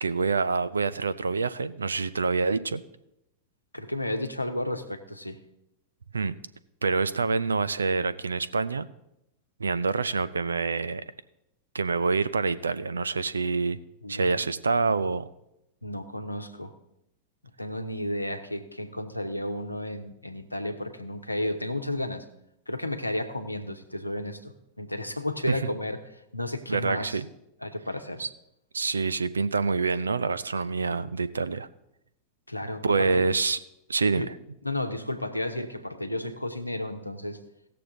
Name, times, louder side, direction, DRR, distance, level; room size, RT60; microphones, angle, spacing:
voice 1, 0.0-2.8 6.1-6.3 6.8-8.8 9.6-11.0 11.7-13.8 14.1-15.3 25.5-25.6 26.7-27.3 28.2-28.3 28.7-31.7 32.8-33.6 33.9-34.3, right 4 dB, 75° right, 16 dB, 0.5 m, -26 dB
voice 2, 3.7-5.4 14.0-14.4 15.8-16.7 17.6-22.3 22.7-26.0 26.3-27.2 27.6-28.2 32.5-33.2 34.1-34.3 34.6-37.4, left 1 dB, 85° left, 6 dB, 1.0 m, -32 dB
17.5 x 6.8 x 3.8 m, 0.83 s
figure-of-eight pair, 90°, 0 cm